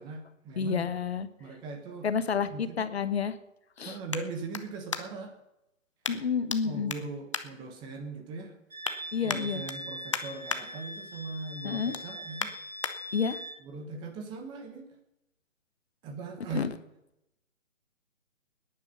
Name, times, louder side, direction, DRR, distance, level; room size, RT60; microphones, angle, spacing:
voice 1, 0.0-0.9 1.4-2.1 2.5-2.9 3.8-5.3 6.6-8.5 9.2-12.5 13.6-14.9 16.0-16.7, right 3 dB, 10° right, 6 dB, 1.2 m, -40 dB
voice 2, 0.6-1.3 2.0-3.4 3.8-4.0 6.1-6.9 9.1-9.6 11.6-11.9 13.1-13.4 16.5-16.7, left 6 dB, 50° left, 12 dB, 1.1 m, -29 dB
sound 1, 1.3-5.4 6.0-6.6 6.9-8.2 8.5-9.0 9.3-10.6 11.0-11.3 11.6-12.9 13.5-13.6, left 5 dB, 25° left, 0.5 m, -37 dB
Wind instrument woodwind instrument, 8.7-13.6, equal, 80° right, 1.8 m, -41 dB
21.0 x 10.0 x 5.6 m, 0.87 s
figure-of-eight pair, 140°, 41 cm